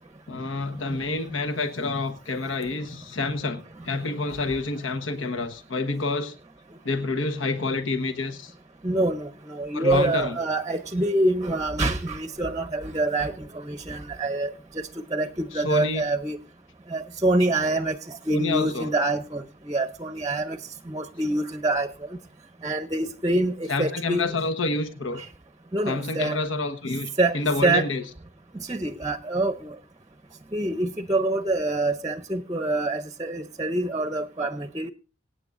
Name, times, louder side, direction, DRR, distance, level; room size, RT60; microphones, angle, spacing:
voice 1, 0.3-6.3 6.8-8.5 9.7-10.4 15.5-16.0 18.3-18.9 23.7-25.2 25.8-28.0, left 3 dB, 75° left, 7 dB, 1.2 m, -28 dB
voice 2, 8.8-14.8 15.1-16.4 16.9-20.6 20.9-21.9 22.6-24.3 25.2-25.3 25.7-26.4 27.2-27.9 28.5-29.7 30.5-34.9, right 2 dB, 20° right, 9 dB, 0.6 m, -26 dB
24.5 x 8.8 x 2.6 m, 0.32 s
head